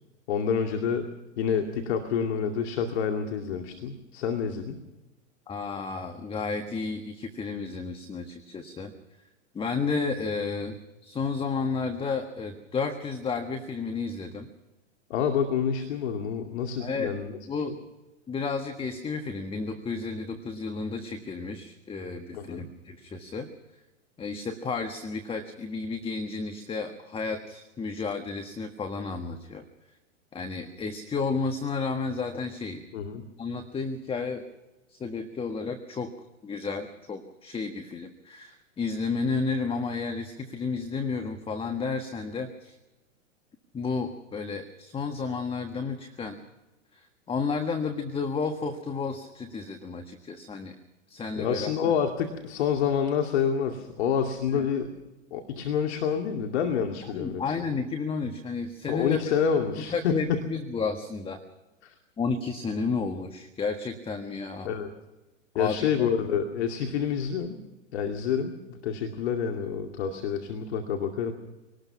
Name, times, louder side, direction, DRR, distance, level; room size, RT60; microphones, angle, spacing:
voice 1, 0.3-1.1 1.4-4.8 15.1-17.3 22.3-22.7 32.9-33.2 51.4-54.9 55.3-57.5 58.9-60.4 61.8-61.9 64.6-64.9 65.6-67.6 67.9-68.6 68.8-71.3, left 7 dB, 55° left, 5 dB, 2.5 m, -28 dB
voice 2, 5.5-8.9 9.5-14.5 16.8-17.2 17.5-17.7 18.3-23.5 24.2-29.6 30.3-32.8 33.4-34.5 34.9-36.1 36.4-42.8 43.7-46.4 46.9-50.8 51.1-52.0 54.5-54.7 57.1-59.2 59.9-61.4 62.2-64.7 65.5-66.1, left 4 dB, 15° left, 6 dB, 1.5 m, -32 dB
24.5 x 19.0 x 5.9 m, 1.1 s
hypercardioid pair, 110°, 38 cm